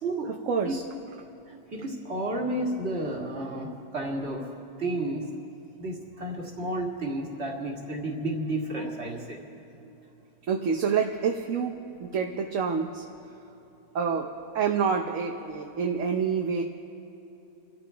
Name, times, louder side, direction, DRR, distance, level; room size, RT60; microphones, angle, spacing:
voice 1, 0.5-0.8 10.5-13.0 13.9-16.6, right 6 dB, 60° right, 2 dB, 1.2 m, -27 dB
voice 2, 1.7-4.5 4.8-5.2 5.8-9.4 9.8-9.9, right 1 dB, 45° right, -1 dB, 2.4 m, -31 dB
29.5 x 13.5 x 3.5 m, 3.0 s
omnidirectional pair, 1.6 m